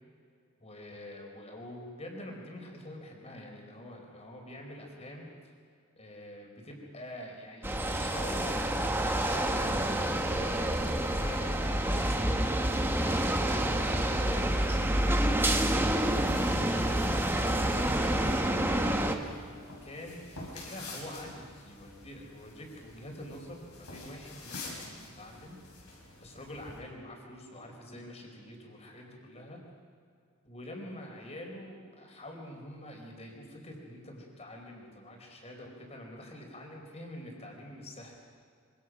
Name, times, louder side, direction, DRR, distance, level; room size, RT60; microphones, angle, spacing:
voice 1, 0.6-5.3 6.0-15.3 16.5-17.0 17.6-19.0 19.8-25.9 26.2-29.6 30.4-38.2, left 1 dB, 30° left, 1 dB, 4.7 m, -46 dB
sound 1, 7.6-19.1, right 1 dB, 10° right, 1.4 m, -28 dB
sound 2, 15.8-26.8, left 2 dB, 85° left, 7.2 m, -48 dB
26.5 x 25.0 x 6.3 m, 2.3 s
head